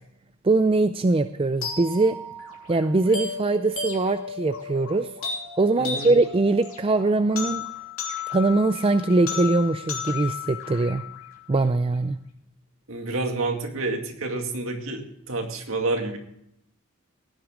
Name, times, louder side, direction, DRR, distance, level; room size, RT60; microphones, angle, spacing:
voice 1, 0.4-2.2 2.7-5.1 5.6-7.7 8.3-11.0 11.5-12.2, right 2 dB, 25° right, 10 dB, 0.4 m, -22 dB
sound 1, 1.6-11.6, left 5 dB, 75° left, 3.3 m, -34 dB
voice 2, 5.8-6.1 12.9-16.2, right 2 dB, 65° right, 3 dB, 2.2 m, -29 dB
16.5 x 10.0 x 3.7 m, 0.73 s
head